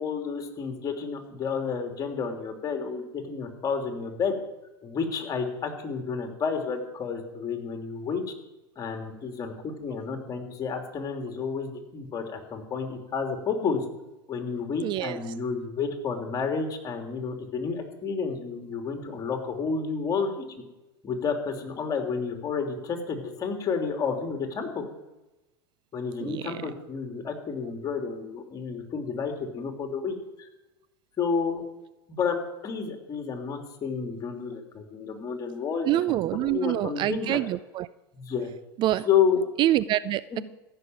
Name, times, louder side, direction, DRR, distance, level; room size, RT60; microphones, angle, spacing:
voice 1, 0.0-4.4 4.8-8.2 8.8-13.8 14.3-20.5 21.0-24.8 25.9-30.5 31.2-31.6 32.2-37.4 38.1-38.5 39.0-39.4 40.3-40.4, left 5 dB, 30° left, 3 dB, 3.0 m, -30 dB
voice 2, 14.8-15.3 26.2-26.6 35.9-37.9 38.8-39.1 39.6-40.4, right 14 dB, 40° right, 17 dB, 0.4 m, -26 dB
14.5 x 6.8 x 9.3 m, 1.0 s
hypercardioid pair, 100°, 13 cm